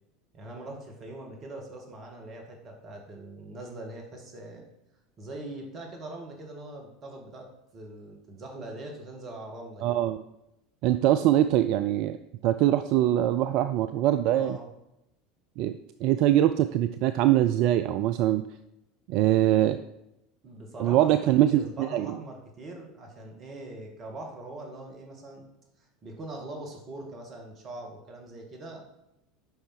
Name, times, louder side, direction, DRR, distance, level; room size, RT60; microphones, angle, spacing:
voice 1, 0.3-4.7 5.2-10.0 14.3-14.7 20.4-25.4 25.8-28.9, right 2 dB, 35° right, 1 dB, 1.9 m, -42 dB
voice 2, 9.8-10.2 10.8-12.2 12.4-14.6 15.6-15.7 16.0-18.4 19.1-19.8 20.8-22.1, right 12 dB, 50° right, 11 dB, 0.3 m, -23 dB
7.8 x 5.5 x 4.5 m, 0.86 s
figure-of-eight pair, 75°, 0 cm